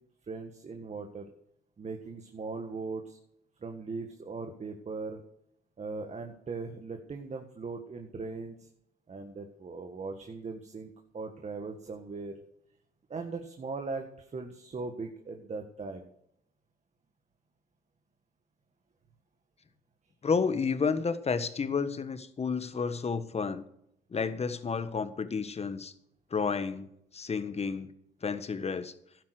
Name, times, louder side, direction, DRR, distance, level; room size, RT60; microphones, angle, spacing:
voice 1, 0.3-1.3 1.8-3.2 3.6-5.2 5.8-8.7 9.1-12.3 13.1-16.1, right 4 dB, 40° right, 4 dB, 1.8 m, -39 dB
voice 2, 20.2-23.6 24.1-25.9 26.3-26.9 27.1-27.9 28.2-28.9, left 5 dB, 35° left, 12 dB, 1.4 m, -31 dB
12.0 x 9.7 x 6.5 m, 0.76 s
supercardioid pair, 75°, 18 cm